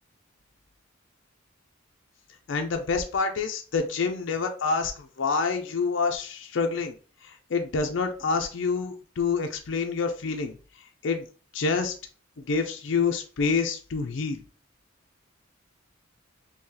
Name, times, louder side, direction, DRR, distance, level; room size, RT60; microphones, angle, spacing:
voice 1, 2.5-7.0 7.2-10.6 11.0-11.2 11.5-11.9 12.4-14.4, left 4 dB, 65° left, 4 dB, 0.4 m, -27 dB
3.8 x 2.8 x 2.8 m, 0.38 s
head